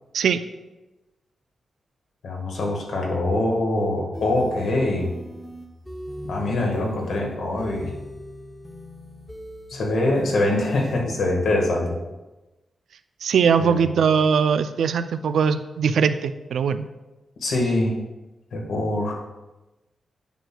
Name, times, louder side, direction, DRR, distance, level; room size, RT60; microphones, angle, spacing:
voice 1, 2.2-5.1 6.3-7.9 9.7-12.0 13.6-13.8 17.4-18.0 18.5-19.2, left 2 dB, 70° left, 0 dB, 1.5 m, -24 dB
sound 1, 4.1-11.0, left 1 dB, 5° left, 0.7 m, -39 dB
voice 2, 13.2-16.9, right 6 dB, 85° right, 11 dB, 0.3 m, -21 dB
9.1 x 5.9 x 2.3 m, 1.1 s
wide cardioid pair, 165°, 0 cm